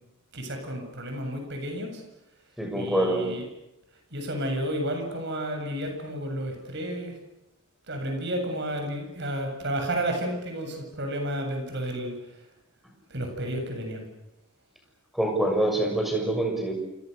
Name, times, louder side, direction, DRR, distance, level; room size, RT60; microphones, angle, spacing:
voice 1, 0.3-2.0 2.7-3.4 4.1-7.2 7.9-12.4 13.1-14.1, right 1 dB, 55° right, 4 dB, 7.7 m, -31 dB
voice 2, 2.6-3.3 15.1-16.7, right 1 dB, ahead, 2 dB, 6.9 m, -25 dB
28.5 x 28.5 x 6.8 m, 0.88 s
head